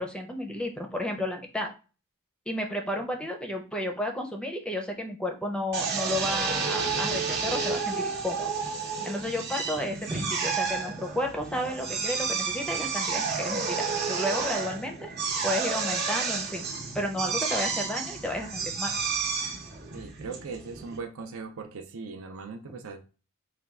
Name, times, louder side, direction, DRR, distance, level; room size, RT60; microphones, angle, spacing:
voice 1, 0.0-1.7 2.5-8.5 9.0-15.0 15.4-16.6 16.9-18.9, left 1 dB, 5° left, 3 dB, 0.5 m, -32 dB
Drill, 5.7-21.0, right 5 dB, 45° right, 0.9 m, -31 dB
voice 2, 19.9-23.0, right 4 dB, 65° right, 5 dB, 0.5 m, -39 dB
4.3 x 2.3 x 3.6 m, 0.34 s
head